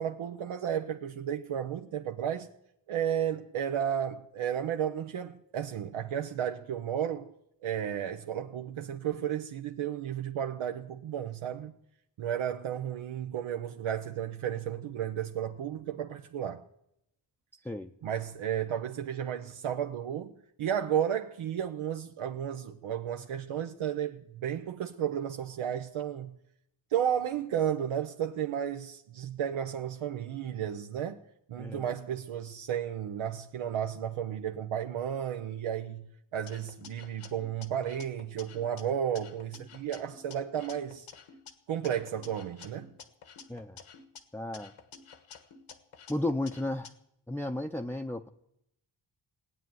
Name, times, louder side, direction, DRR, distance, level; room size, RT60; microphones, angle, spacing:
voice 1, 0.0-2.5 2.9-7.3 7.6-11.7 12.2-16.6 18.0-20.3 20.6-26.4 26.9-31.2 31.5-41.1 41.7-42.9, right 9 dB, 85° right, 0.9 m, -33 dB
sound 1, 36.5-38.8 39.2-41.5 41.8-44.2 44.5-46.9, left 6 dB, 85° left, 1.7 m, -51 dB
voice 2, 43.5-43.8 44.3-44.7 46.1-46.9 47.3-48.3, left 1 dB, 5° left, 0.6 m, -33 dB
17.0 x 8.9 x 9.4 m
cardioid pair, 85°, 47 cm